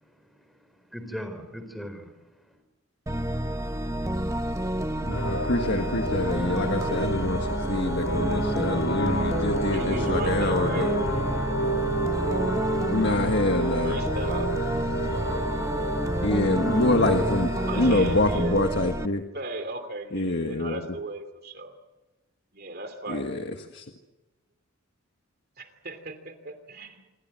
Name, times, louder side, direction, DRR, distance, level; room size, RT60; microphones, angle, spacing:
voice 1, 0.1-2.1, equal, ahead, 7 dB, 4.4 m, -39 dB
sound 1, 3.1-19.1, right 1 dB, 15° right, 0.9 m, -29 dB
voice 2, 5.0-10.9 12.9-14.0 16.2-17.5 17.8-19.2 20.1-20.8 23.1-23.4 23.7-23.8, left 2 dB, 60° left, 4 dB, 1.7 m, -26 dB
sound 2, 5.1-18.2, equal, 80° left, 4.7 m, -30 dB
voice 3, 9.7-10.9 13.6-14.5 17.7-18.6 19.3-21.7 22.5-23.3 25.6-27.0, right 2 dB, 50° right, 9 dB, 2.9 m, -36 dB
27.5 x 23.5 x 7.8 m, 1.0 s
head